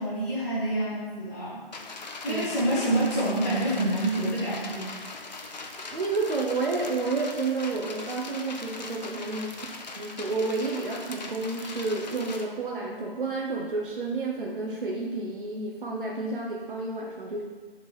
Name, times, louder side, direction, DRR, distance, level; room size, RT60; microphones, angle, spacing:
voice 1, 0.0-1.6 2.2-4.9, right 1 dB, 15° left, -7 dB, 1.3 m, -27 dB
sound 1, 1.7-12.4, left 3 dB, 45° left, 0.7 m, -40 dB
voice 2, 5.9-9.7 9.9-17.4, right 3 dB, 60° right, -2 dB, 0.9 m, -30 dB
6.3 x 3.7 x 4.9 m, 1.4 s
figure-of-eight pair, 145°, 30 cm